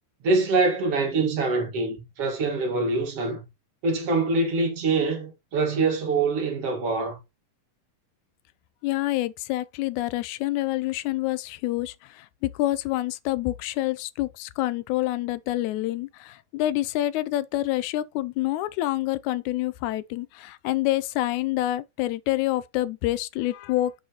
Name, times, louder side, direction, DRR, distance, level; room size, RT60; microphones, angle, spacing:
voice 1, 0.2-3.5 3.8-7.2, right 3 dB, 55° right, 2.6 m, -24 dB
voice 2, 8.8-23.9, left 16 dB, 85° left, 2.0 m, -27 dB
9.0 x 5.6 x 2.9 m
omnidirectional pair, 3.3 m